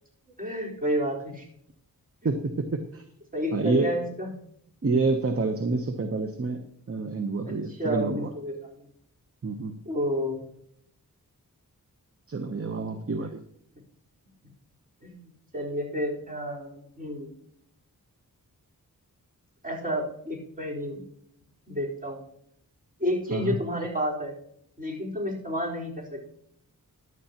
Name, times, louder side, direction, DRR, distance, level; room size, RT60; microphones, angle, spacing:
voice 1, 0.4-1.4 3.3-4.3 7.7-8.9 9.9-10.4 13.2-13.3 15.0-17.3 19.6-21.0 21.7-22.2 23.0-24.4 24.8-26.2, equal, 25° right, -3 dB, 4.3 m, -30 dB
voice 2, 2.2-3.0 3.5-3.9 4.8-8.3 9.4-9.8 12.3-13.4 23.3-23.6, right 3 dB, 40° right, 7 dB, 0.9 m, -28 dB
14.5 x 11.0 x 2.9 m, 0.71 s
wide cardioid pair, 70°, 36 cm